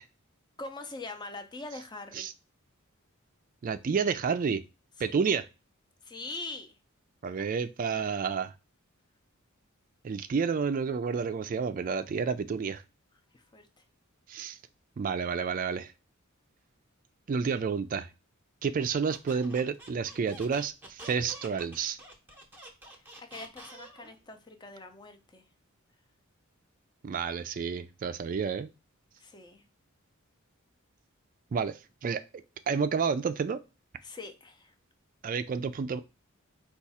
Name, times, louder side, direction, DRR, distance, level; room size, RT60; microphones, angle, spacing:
voice 1, 0.6-2.3 5.0-5.1 6.0-6.7 7.2-7.5 13.3-13.8 23.0-25.5 29.2-29.6 34.0-34.7, left 3 dB, 20° left, 0.6 m, -43 dB
voice 2, 3.6-4.6 5.0-5.5 7.2-8.5 10.0-12.8 14.3-14.6 15.0-15.9 17.3-18.1 18.6-22.0 27.0-28.7 31.5-32.2 32.7-33.6 35.2-36.0, right 5 dB, 40° right, 0.3 m, -30 dB
Squeak, 19.1-24.1, right 1 dB, 10° right, 0.8 m, -48 dB
4.7 x 2.4 x 4.1 m
head